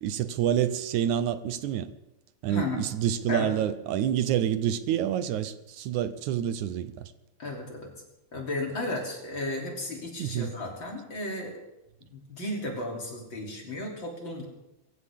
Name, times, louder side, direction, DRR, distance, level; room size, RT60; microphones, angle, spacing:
voice 1, 0.0-1.9 2.4-7.1 10.2-10.5, right 10 dB, 80° right, 2.2 m, -28 dB
voice 2, 2.5-2.9 3.3-3.6 7.4-7.9 8.3-11.6 12.1-14.4, left 2 dB, 40° left, 3.6 m, -34 dB
24.0 x 15.0 x 3.6 m
omnidirectional pair, 3.4 m